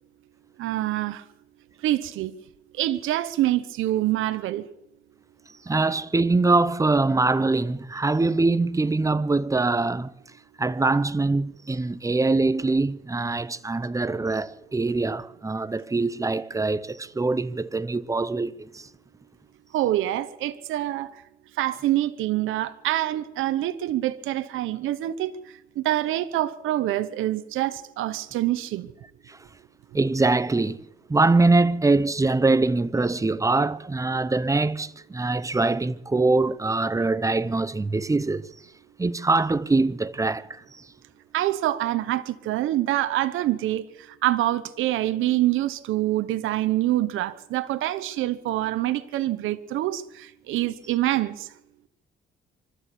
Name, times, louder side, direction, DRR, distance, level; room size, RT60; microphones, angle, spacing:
voice 1, 0.6-1.2 1.8-2.3 2.8-4.7 19.7-21.1 21.6-25.3 25.8-28.9 41.3-43.8 44.2-51.5, right 14 dB, 90° right, 1.0 m, -25 dB
voice 2, 5.7-10.1 10.6-18.9 29.3-29.4 29.9-38.5 39.0-40.6, right 3 dB, 15° right, 0.8 m, -23 dB
25.0 x 12.5 x 8.4 m
cardioid pair, 90°, 20 cm